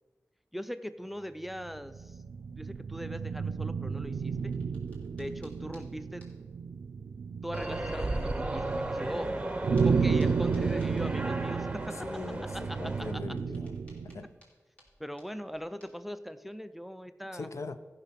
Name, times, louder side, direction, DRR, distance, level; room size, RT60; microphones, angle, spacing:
voice 1, 0.5-2.2 2.6-4.6 5.2-6.3 7.4-9.3 9.8-12.1 12.5-13.4 15.0-17.5, equal, 5° right, 0.4 m, -40 dB
sound 1, 1.6-14.2, right 5 dB, 85° right, 0.4 m, -33 dB
sound 2, 2.9-3.4 4.1-5.9 6.2-6.3 7.0-7.1 8.8-8.9 9.8-10.0 10.2-11.7 12.8-16.0, equal, 25° left, 3.0 m, -61 dB
sound 3, 7.5-13.1, right 1 dB, 20° right, 0.9 m, -35 dB
voice 2, 12.0-13.7 14.1-14.3 17.3-17.8, left 3 dB, 70° left, 0.6 m, -40 dB
14.5 x 5.6 x 5.7 m
wide cardioid pair, 100°, 5 cm